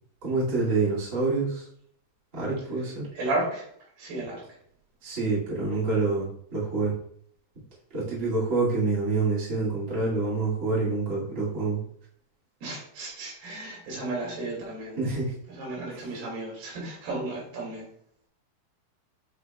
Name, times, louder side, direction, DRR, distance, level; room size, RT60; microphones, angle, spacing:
voice 1, 0.2-1.6 2.3-3.0 5.0-6.9 7.9-11.8 15.0-15.3 15.9-16.1, right 3 dB, 25° right, -8 dB, 1.7 m, -27 dB
voice 2, 3.1-3.7 4.0-4.4 12.6-15.0 15.5-17.9, right 2 dB, 65° right, -3 dB, 4.0 m, -33 dB
8.8 x 4.8 x 2.3 m, 0.66 s
omnidirectional pair, 5.2 m